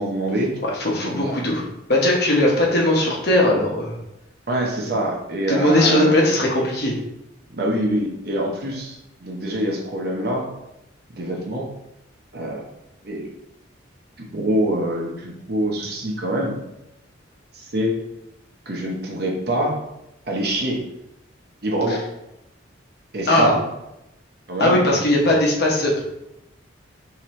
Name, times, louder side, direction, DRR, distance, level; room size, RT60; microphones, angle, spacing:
voice 1, 0.0-0.5 1.0-1.2 4.5-6.2 7.5-10.5 11.1-11.7 12.3-12.6 13.0-13.3 14.2-16.6 17.5-17.9 18.7-19.8 20.3-20.9 21.6-22.0 23.1-23.6 24.5-24.8, right 1 dB, 50° right, -1 dB, 0.8 m, -25 dB
voice 2, 0.6-1.6 1.9-4.0 5.5-7.0 21.9-22.0 23.3-23.5 24.6-26.0, left 1 dB, 55° left, -2 dB, 1.0 m, -19 dB
4.4 x 2.9 x 3.2 m, 0.88 s
head